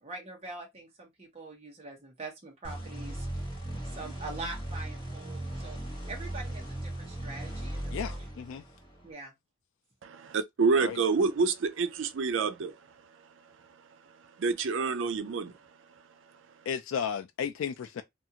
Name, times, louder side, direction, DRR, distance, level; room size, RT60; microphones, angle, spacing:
voice 1, 0.0-3.7 3.9-5.8 6.1-8.3 9.0-9.3, right 3 dB, 30° right, 0.8 m, -44 dB
sound 1, 2.6-9.1, right 1 dB, 20° left, 1.2 m, -38 dB
voice 2, 7.9-8.6 10.8-11.0 16.7-18.0, left 7 dB, 75° left, 0.3 m, -34 dB
voice 3, 10.0-12.8 14.4-15.5, right 4 dB, 65° right, 0.4 m, -27 dB
2.5 x 2.4 x 2.8 m
head